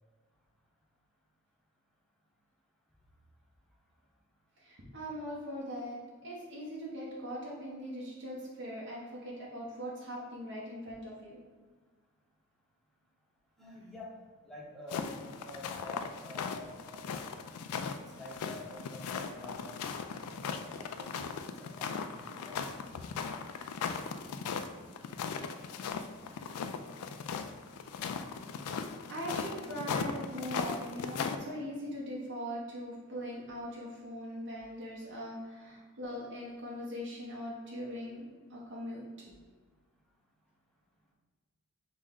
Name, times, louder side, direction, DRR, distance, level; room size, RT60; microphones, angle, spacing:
voice 1, 4.6-6.0 6.2-11.4 29.1-39.0, equal, 55° right, -5 dB, 0.8 m, -41 dB
voice 2, 13.6-14.1 14.4-17.0 18.2-20.3 20.8-22.8, left 1 dB, ahead, -4 dB, 0.7 m, -48 dB
sound 1, 14.9-31.4, left 6 dB, 80° left, 0.3 m, -38 dB
6.2 x 2.1 x 3.6 m, 1.4 s
head